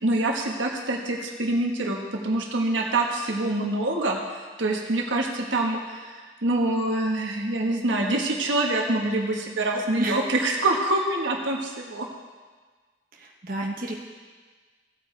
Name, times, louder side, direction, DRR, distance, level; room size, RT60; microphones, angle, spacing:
voice 1, 0.0-4.2 4.6-12.1, right 2 dB, 85° right, 1 dB, 1.4 m, -25 dB
voice 2, 13.1-13.9, right 1 dB, 45° right, -2 dB, 1.2 m, -30 dB
16.0 x 8.5 x 3.4 m, 1.4 s
head